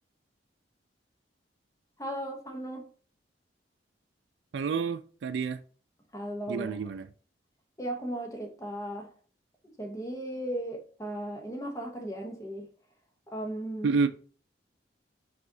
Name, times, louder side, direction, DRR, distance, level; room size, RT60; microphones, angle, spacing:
voice 1, 2.0-2.9 6.1-6.8 7.8-9.1 9.6-12.7 13.3-14.0, right 1 dB, 15° left, 0.8 m, -36 dB
voice 2, 4.5-5.6 6.5-7.0 13.8-14.1, right 5 dB, 80° right, 0.4 m, -29 dB
4.9 x 2.4 x 3.7 m
head